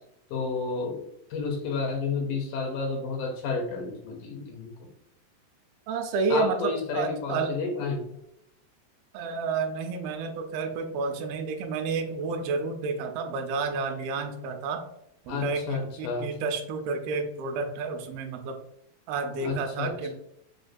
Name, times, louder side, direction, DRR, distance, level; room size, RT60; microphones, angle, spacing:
voice 1, 0.3-1.0 1.3-4.9 6.3-8.2 15.3-16.3 19.4-19.9, left 4 dB, 80° left, 2 dB, 2.2 m, -31 dB
voice 2, 5.9-7.5 9.1-14.8 15.3-18.6 19.1-20.1, right 4 dB, 85° right, 5 dB, 2.4 m, -30 dB
6.3 x 2.3 x 2.5 m, 0.75 s
omnidirectional pair, 4.1 m